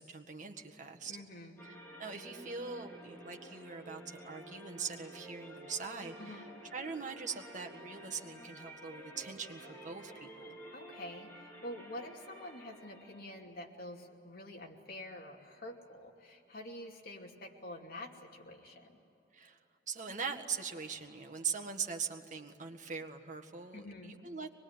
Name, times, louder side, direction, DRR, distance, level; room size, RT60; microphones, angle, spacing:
voice 1, 0.0-1.2 1.6-10.6 19.3-19.6 19.9-24.5, right 5 dB, 45° right, 4 dB, 1.8 m, -42 dB
voice 2, 1.1-1.6 6.2-6.5 10.7-19.0 23.7-24.2, left 1 dB, 60° left, 0 dB, 2.6 m, -47 dB
sound 1, 1.6-13.4, right 1 dB, 10° left, 4.0 m, -51 dB
24.0 x 21.0 x 9.7 m, 2.9 s
head